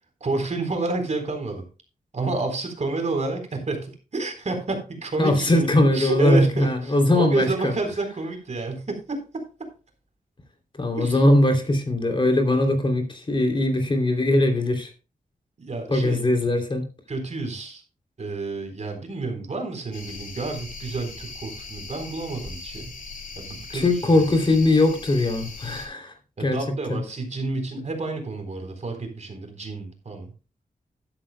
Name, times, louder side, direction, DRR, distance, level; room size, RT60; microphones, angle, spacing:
voice 1, 0.2-1.7 2.1-9.7 10.9-11.2 15.6-16.2 17.1-17.8 18.2-22.9 23.4-24.2 26.4-30.3, right 3 dB, 50° right, 5 dB, 3.9 m, -30 dB
voice 2, 5.2-7.7 10.8-14.9 15.9-16.9 23.7-26.1 26.4-26.6 26.9-27.0, left 1 dB, 35° left, 4 dB, 2.9 m, -20 dB
sound 1, 19.9-25.9, left 3 dB, 65° left, 3.2 m, -39 dB
13.0 x 12.5 x 2.2 m, 0.33 s
wide cardioid pair, 125°, 15 cm